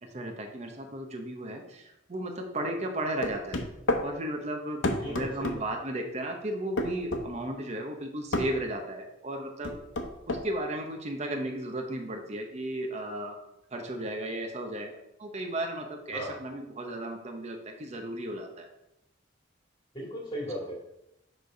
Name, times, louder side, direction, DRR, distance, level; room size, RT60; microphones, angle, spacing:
voice 1, 0.0-3.6 4.0-9.8 10.3-13.4 13.7-18.7, right 1 dB, 35° right, 3 dB, 0.8 m, -35 dB
sound 1, 3.2-4.1 4.8-5.6 6.8-7.3 8.3-8.5 9.6-10.4, left 2 dB, 80° left, 0.8 m, -29 dB
voice 2, 5.0-5.6 16.1-16.3 19.9-20.8, equal, 25° left, -4 dB, 2.3 m, -36 dB
6.8 x 3.4 x 5.1 m, 0.85 s
head